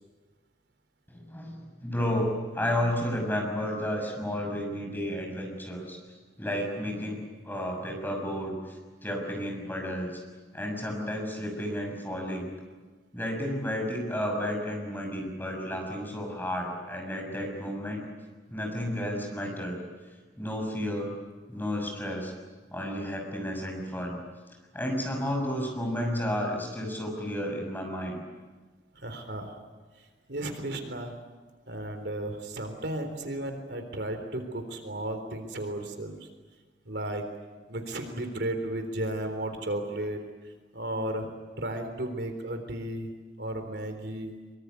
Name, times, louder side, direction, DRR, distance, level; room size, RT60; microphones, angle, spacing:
voice 1, 1.1-2.3 2.5-6.0 6.4-8.8 9.0-10.1 10.5-12.5 13.1-18.1 18.5-19.8 20.4-21.2 21.5-22.3 22.7-24.2 24.7-28.2, equal, 10° left, 2 dB, 6.6 m, -32 dB
voice 2, 28.9-29.5 30.0-31.1 31.7-36.3 36.9-37.2 37.7-41.3 41.6-43.1 43.4-44.3, right 1 dB, 70° right, 6 dB, 3.7 m, -34 dB
24.5 x 24.0 x 9.6 m, 1.3 s
head